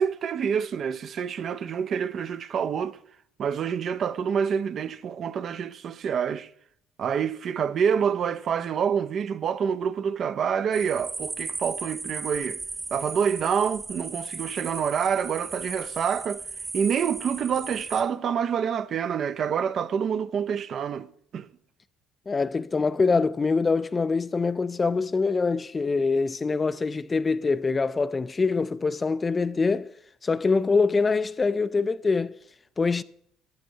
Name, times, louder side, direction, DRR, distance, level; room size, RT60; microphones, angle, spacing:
voice 1, 0.0-3.0 3.4-6.5 7.0-12.6 12.9-16.4 16.7-21.1 21.3-21.5, right 7 dB, 50° right, 0.4 m, -27 dB
sound 1, 10.7-18.0, right 4 dB, 30° right, 1.1 m, -36 dB
voice 2, 22.3-29.9 30.2-32.3 32.8-33.0, left 4 dB, 25° left, 0.3 m, -24 dB
13.5 x 9.1 x 2.7 m
cardioid pair, 100°, 0 cm